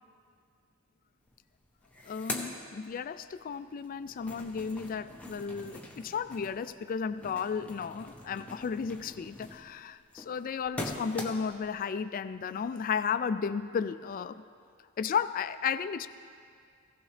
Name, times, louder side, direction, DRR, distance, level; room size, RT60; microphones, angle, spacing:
sound 1, 1.3-1.4 1.6-3.4 3.8-11.7, left 1 dB, 5° left, 0.8 m, -43 dB
voice 1, 2.0-14.4 15.0-16.1, left 6 dB, 40° left, 13 dB, 0.3 m, -34 dB
16.0 x 15.0 x 3.3 m, 2.2 s
head